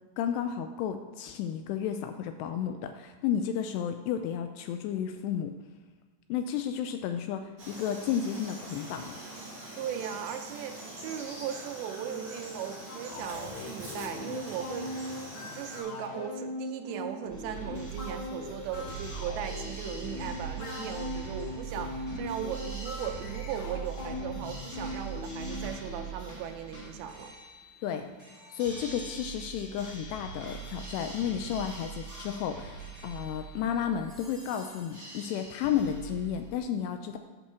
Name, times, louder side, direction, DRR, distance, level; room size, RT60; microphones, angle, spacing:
voice 1, 0.2-5.5 6.3-9.2 27.8-28.1 28.5-37.2, left 9 dB, 85° left, 7 dB, 2.4 m, -32 dB
Frog, 7.6-15.8, right 1 dB, 25° right, 2.7 m, -44 dB
voice 2, 9.8-27.3, right 8 dB, 80° right, 6 dB, 2.7 m, -38 dB
sound 1, 12.9-26.0, left 2 dB, 50° left, 2.4 m, -40 dB
sound 2, 17.3-36.6, right 5 dB, 5° left, 1.4 m, -42 dB
8.7 x 5.4 x 6.9 m, 1.5 s
omnidirectional pair, 5.3 m